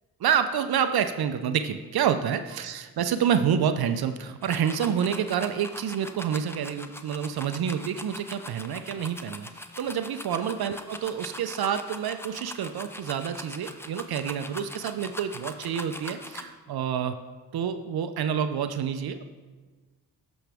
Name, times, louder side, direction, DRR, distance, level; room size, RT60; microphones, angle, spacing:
voice 1, 0.2-9.5 9.8-17.1 17.5-19.2, right 8 dB, 65° right, 9 dB, 0.6 m, -28 dB
sound 1, 4.4-16.4, left 1 dB, 5° left, 0.6 m, -41 dB
11.5 x 6.2 x 3.4 m, 1.3 s
cardioid pair, 55°, 41 cm